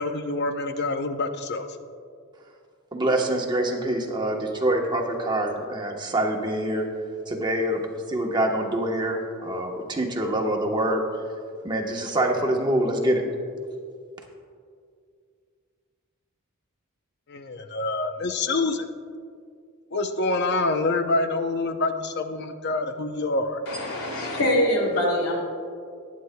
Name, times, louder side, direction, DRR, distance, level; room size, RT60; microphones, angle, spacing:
voice 1, 0.0-1.7 17.3-18.9 19.9-23.6, left 2 dB, 50° left, 7 dB, 0.6 m, -26 dB
voice 2, 2.9-6.9 7.3-7.8 8.1-11.0 11.6-13.2, right 1 dB, 20° right, 1 dB, 1.0 m, -25 dB
voice 3, 23.7-25.4, left 1 dB, 90° left, -1 dB, 2.7 m, -24 dB
20.0 x 9.4 x 2.2 m, 2.2 s
head